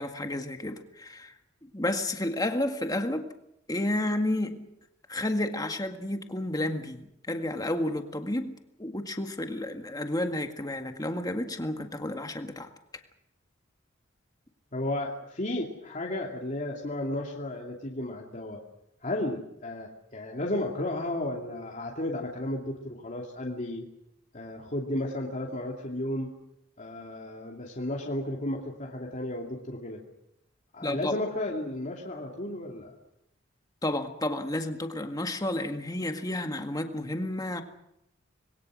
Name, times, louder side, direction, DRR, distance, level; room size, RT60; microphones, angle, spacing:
voice 1, 0.0-1.3 1.6-3.3 3.7-4.6 5.1-12.7 30.8-31.1 33.8-37.6, left 1 dB, 20° left, 1.9 m, -31 dB
voice 2, 14.7-18.6 19.0-23.8 24.3-26.3 26.8-30.0 30.7-32.9, left 1 dB, 40° left, 2.6 m, -33 dB
26.5 x 22.0 x 6.3 m
head